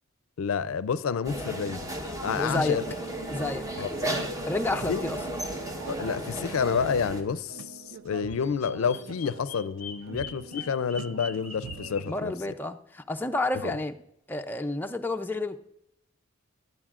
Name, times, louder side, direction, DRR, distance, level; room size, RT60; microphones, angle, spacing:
voice 1, 0.4-1.9 2.2-2.8 3.8-3.9 4.9-5.0 5.9-12.3 13.6-13.7, left 6 dB, 90° left, 0.4 m, -29 dB
sound 1, 1.2-7.2, right 1 dB, 15° right, 0.9 m, -34 dB
voice 2, 2.3-2.8 3.3-3.7 4.0-5.2 12.1-14.0 14.3-15.6, left 2 dB, 10° left, 0.4 m, -30 dB
sound 2, 3.9-12.2, right 6 dB, 70° right, 0.4 m, -45 dB
Bird vocalization bird call bird song, 8.3-12.1, left 5 dB, 35° left, 0.8 m, -43 dB
16.0 x 11.0 x 2.4 m
head